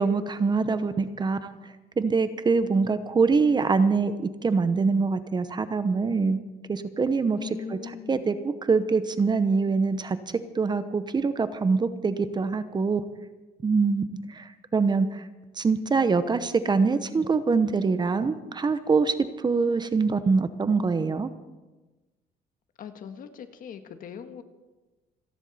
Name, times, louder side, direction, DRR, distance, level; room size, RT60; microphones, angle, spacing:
voice 1, 0.0-1.5 2.0-4.1 4.4-6.4 6.7-7.8 8.1-10.2 10.5-13.0 13.6-14.0 14.3-15.2 15.6-19.2 19.4-21.3, right 4 dB, 25° right, 12 dB, 0.9 m, -24 dB
voice 2, 7.4-8.3 22.8-24.4, left 7 dB, 55° left, 7 dB, 1.6 m, -40 dB
28.5 x 10.5 x 4.2 m, 1.2 s
cardioid pair, 110°, 17 cm